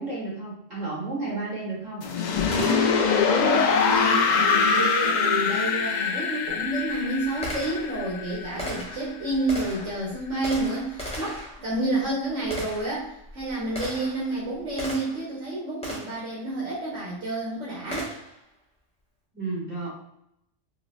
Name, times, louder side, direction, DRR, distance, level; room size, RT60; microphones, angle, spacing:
voice 1, 0.0-2.1 19.3-19.9, right 3 dB, 35° right, -7 dB, 1.7 m, -32 dB
sound 1, 2.0-8.9, left 5 dB, 70° left, 0.4 m, -23 dB
Gunshot gunfire, 2.5-3.3 5.7-5.8 6.5-15.3 15.8-16.3 17.9-18.4, equal, 5° left, 0.7 m, -38 dB
voice 2, 2.5-18.1, right 1 dB, 70° right, -6 dB, 1.3 m, -29 dB
4.9 x 2.1 x 2.4 m, 0.77 s
omnidirectional pair, 1.3 m